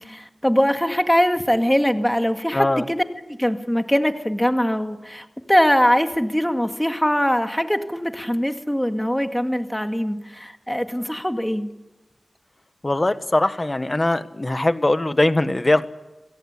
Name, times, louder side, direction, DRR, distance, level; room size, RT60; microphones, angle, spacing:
voice 1, 0.0-11.7, equal, 5° left, 6 dB, 2.1 m, -22 dB
voice 2, 2.5-2.8 12.8-15.9, left 2 dB, 30° left, 11 dB, 1.5 m, -21 dB
27.5 x 17.5 x 8.4 m, 1.0 s
wide cardioid pair, 55°, 0 cm